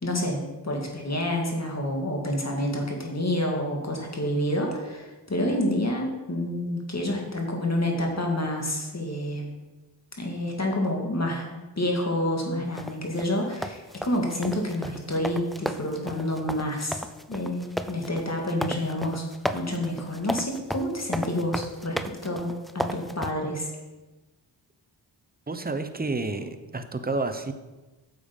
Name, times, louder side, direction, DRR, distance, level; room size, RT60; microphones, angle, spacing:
voice 1, 0.0-9.5 10.2-19.2 19.5-22.0 22.2-23.7, left 1 dB, 35° left, 1 dB, 2.2 m, -28 dB
sound 1, 12.8-23.3, equal, ahead, 0.5 m, -34 dB
voice 2, 25.5-27.5, right 3 dB, 20° right, 9 dB, 0.9 m, -30 dB
9.2 x 7.0 x 5.3 m, 1.2 s
cardioid pair, 65°, 45 cm